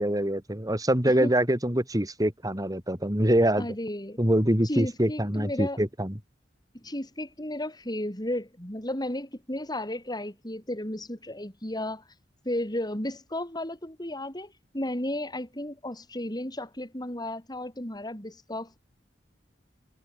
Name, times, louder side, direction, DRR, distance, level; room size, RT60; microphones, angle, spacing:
voice 1, 0.0-3.7 4.2-6.1, right 1 dB, 20° right, 6.0 m, -24 dB
voice 2, 3.6-4.2 4.6-5.8 6.7-12.0 12.5-18.8, left 1 dB, 20° left, 6.9 m, -33 dB
head